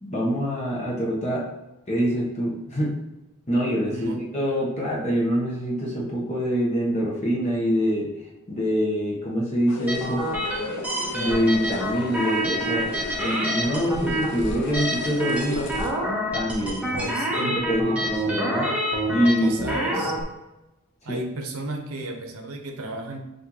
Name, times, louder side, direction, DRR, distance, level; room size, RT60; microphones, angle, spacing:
voice 1, 0.0-1.4 1.9-2.9 3.5-8.1 8.5-10.2 11.1-12.9 13.2-15.6 16.3-18.7 19.1-19.6 21.1-21.2, equal, 30° left, -4 dB, 0.9 m, -25 dB
voice 2, 3.9-4.2 16.9-17.6 19.2-20.2 21.0-23.2, right 2 dB, 75° right, 4 dB, 0.7 m, -34 dB
sound 1, 9.7-15.9, left 2 dB, 55° left, 0.7 m, -35 dB
sound 2, 9.9-20.2, equal, 5° right, 0.6 m, -28 dB
6.0 x 2.6 x 2.9 m, 1.0 s
head